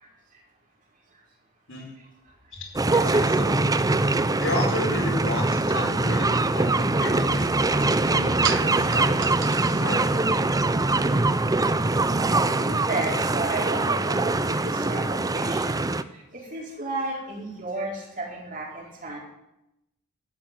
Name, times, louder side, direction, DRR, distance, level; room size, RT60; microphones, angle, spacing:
sound 1, 2.8-16.0, right 2 dB, 15° right, 0.5 m, -23 dB
voice 1, 2.9-3.6 4.4-9.3 9.7-10.2, left 2 dB, 65° left, -1 dB, 5.1 m, -33 dB
sound 2, 6.9-12.4, right 9 dB, 60° right, 0.9 m, -38 dB
voice 2, 8.6-9.0 12.2-15.8 16.3-19.2, right 2 dB, 40° right, -2 dB, 4.7 m, -33 dB
13.0 x 8.8 x 9.2 m, 0.89 s
head